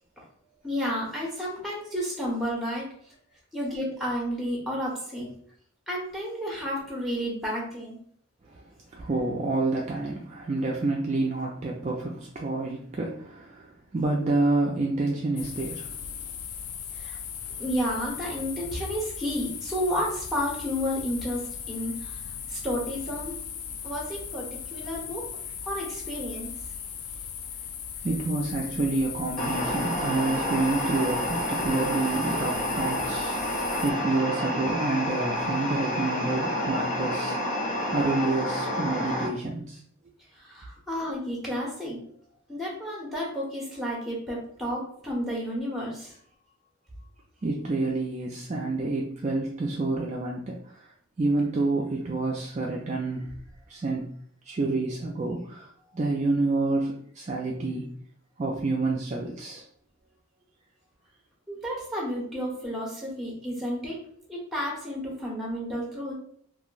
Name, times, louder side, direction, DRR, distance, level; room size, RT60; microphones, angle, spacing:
voice 1, 0.6-2.9 3.5-5.3 5.9-8.0 16.9-17.2 17.6-22.2 22.5-23.3 23.8-25.2 25.6-26.6 40.3-42.0 42.5-46.1 61.5-64.0 64.3-66.1, equal, ahead, -4 dB, 0.8 m, -31 dB
voice 2, 8.4-15.9 28.0-33.4 33.8-37.4 37.9-39.8 47.4-50.9 51.2-53.3 53.7-54.1 54.5-57.9 58.4-59.6, right 2 dB, 30° right, -2 dB, 0.3 m, -28 dB
sound 1, 15.4-33.9, left 7 dB, 85° left, 0.4 m, -38 dB
sound 2, 29.4-39.3, left 1 dB, 40° left, 0.6 m, -29 dB
2.6 x 2.0 x 3.8 m, 0.63 s
head